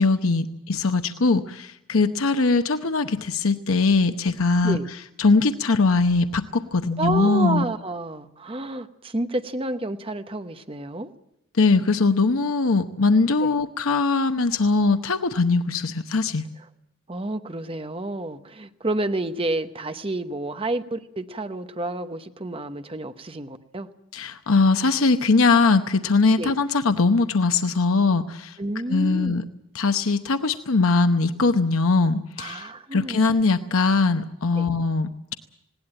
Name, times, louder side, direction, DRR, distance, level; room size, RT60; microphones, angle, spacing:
voice 1, 0.0-4.8 5.2-7.6 11.6-16.4 24.1-28.6 28.9-29.4 29.7-35.4, left 3 dB, 85° left, 8 dB, 0.9 m, -21 dB
voice 2, 7.0-11.1 13.4-13.5 17.1-23.9 26.4-26.5 28.6-29.4 32.4-33.2 34.6-34.7, right 2 dB, 25° right, 9 dB, 1.0 m, -30 dB
19.5 x 18.0 x 8.9 m, 0.80 s
head